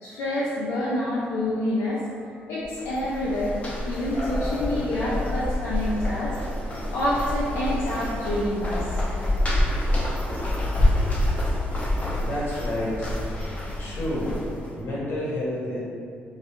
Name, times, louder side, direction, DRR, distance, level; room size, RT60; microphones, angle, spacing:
voice 1, 0.0-2.0 2.5-3.6 3.8-6.6 6.9-9.0, left 1 dB, 85° left, -9 dB, 0.4 m, -27 dB
sound 1, 1.4-9.4, left 1 dB, 75° right, 0.7 m, -49 dB
sound 2, 2.6-14.8, left 1 dB, 35° left, 0.5 m, -27 dB
voice 2, 12.2-13.1 13.8-14.4 14.7-15.8, left 1 dB, 65° left, -7 dB, 0.8 m, -29 dB
2.3 x 2.2 x 2.9 m, 2.3 s
cardioid pair, 110°, 4 cm